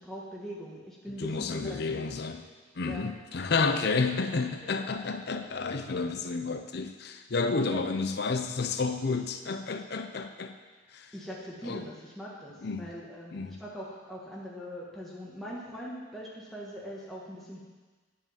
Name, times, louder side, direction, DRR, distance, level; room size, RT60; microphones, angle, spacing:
voice 1, 0.0-2.1 2.8-3.1 7.7-7.8 11.1-17.6, equal, ahead, -6 dB, 1.4 m, -42 dB
voice 2, 1.2-2.4 2.8-10.5 10.9-11.1 11.7-11.8 12.6-12.8 13.3-13.6, left 4 dB, 55° left, 7 dB, 0.6 m, -30 dB
10.5 x 5.0 x 7.1 m, 1.4 s
head